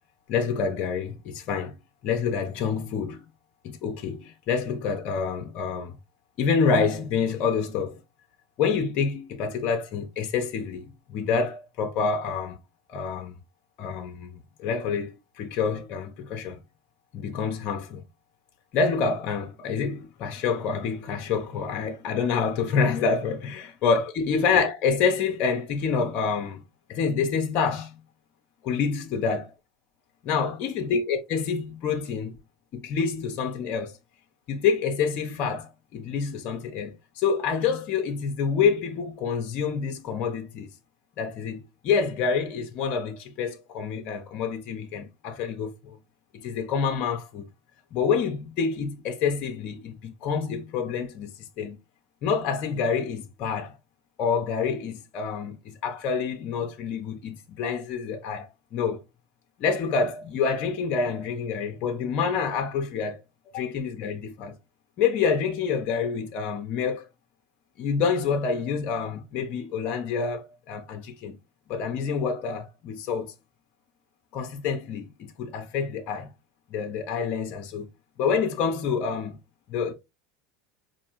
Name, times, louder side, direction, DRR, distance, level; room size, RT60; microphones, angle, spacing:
voice 1, 0.3-1.8 2.0-3.2 3.6-6.0 6.4-8.0 8.6-12.6 12.9-13.4 13.8-16.6 17.1-18.0 18.7-26.6 26.9-28.0 28.6-29.4 30.2-32.4 32.7-33.9 34.5-40.7 41.2-46.0 46.3-47.5 47.9-51.3 51.6-51.8 52.2-53.7 54.2-59.0 59.6-63.2 63.5-64.6 65.0-67.0 67.8-71.4 71.7-73.3 74.3-76.3 76.7-77.9 78.2-79.4 79.7-79.9, left 5 dB, 55° left, 0.7 m, -27 dB
4.6 x 2.6 x 2.9 m
hypercardioid pair, 100°, 3 cm